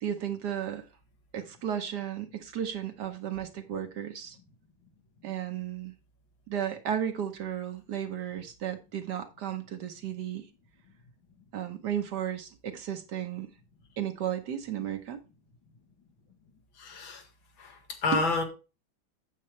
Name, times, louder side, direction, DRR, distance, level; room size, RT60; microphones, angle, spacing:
voice 1, 0.0-0.8 1.3-4.4 5.2-5.9 6.5-10.4 11.5-13.5 14.0-15.2, right 9 dB, 65° right, 1.4 m, -34 dB
voice 2, 16.8-17.2 17.6-18.4, left 3 dB, 75° left, 2.3 m, -29 dB
8.6 x 7.5 x 3.1 m
omnidirectional pair, 2.2 m